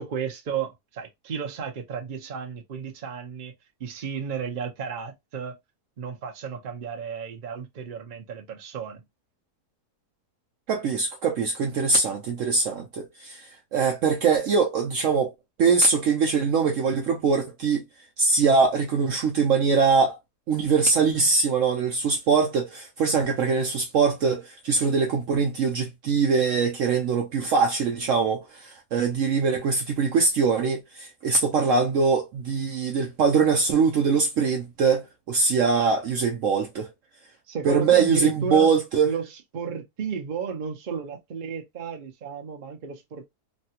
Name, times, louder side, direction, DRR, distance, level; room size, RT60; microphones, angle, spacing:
voice 1, 0.0-3.5 3.8-5.6 6.0-9.0 37.5-38.7 39.0-43.3, right 6 dB, 45° right, 0.7 m, -33 dB
voice 2, 10.7-13.5 13.7-15.3 15.6-17.8 18.2-20.2 20.5-36.9 37.6-39.1, right 5 dB, 65° right, 0.8 m, -22 dB
3.2 x 2.2 x 2.8 m
omnidirectional pair, 1.6 m